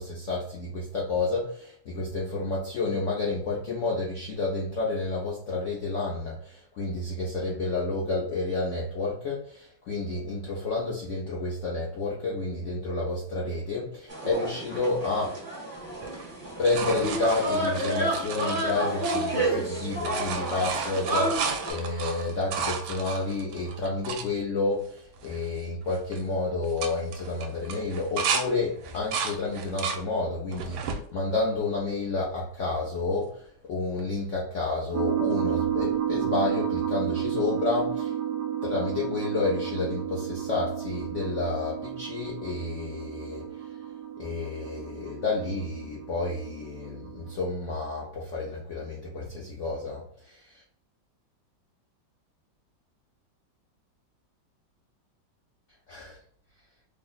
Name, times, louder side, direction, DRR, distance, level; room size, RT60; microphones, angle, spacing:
voice 1, 0.0-15.4 16.6-38.1 38.6-43.8 44.2-50.6 55.9-56.2, left 3 dB, 90° left, -3 dB, 0.6 m, -30 dB
sound 1, 14.1-21.7, right 1 dB, 25° right, 1.0 m, -30 dB
sound 2, 16.0-19.7 19.9-24.3 24.9-25.0 25.2-25.6 25.9-26.2 26.6-28.5 28.8-30.0 30.5-31.0 31.6-32.4 34.0-34.1, right 6 dB, 85° right, 1.4 m, -33 dB
sound 3, 34.9-47.4, right 10 dB, 70° right, 1.1 m, -32 dB
3.4 x 2.0 x 3.8 m, 0.62 s
omnidirectional pair, 2.1 m